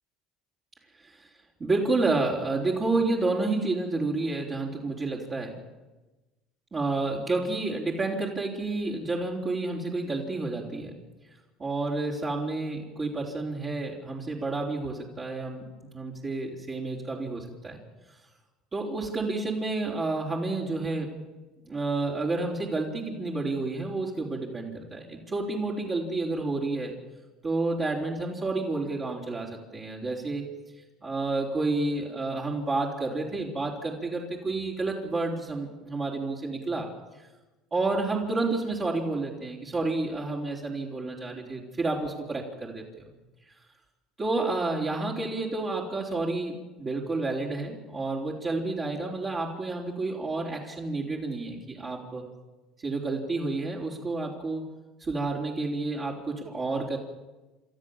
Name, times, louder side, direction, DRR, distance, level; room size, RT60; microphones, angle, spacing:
voice 1, 1.6-5.5 6.7-10.9 11.6-17.8 18.7-21.1 21.7-26.9 27.4-30.5 31.0-36.9 37.7-43.0 44.2-52.2 52.8-54.7 55.0-57.0, right 3 dB, 30° right, -5 dB, 4.2 m, -30 dB
29.5 x 13.5 x 7.4 m, 1.1 s
supercardioid pair, 85°, 0 cm